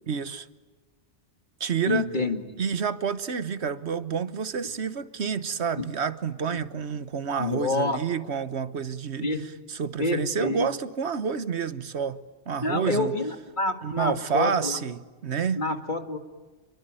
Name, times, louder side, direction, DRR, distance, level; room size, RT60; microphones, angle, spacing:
voice 1, 0.1-0.5 1.6-2.1 2.6-13.2 13.8-15.6, right 6 dB, 75° right, 1.4 m, -29 dB
voice 2, 1.9-2.4 5.8-5.9 6.5-6.6 7.4-8.0 9.2-9.4 10.0-10.7 12.6-14.8 15.6-16.2, left 2 dB, 45° left, 2.4 m, -28 dB
28.5 x 22.5 x 9.0 m
omnidirectional pair, 1.1 m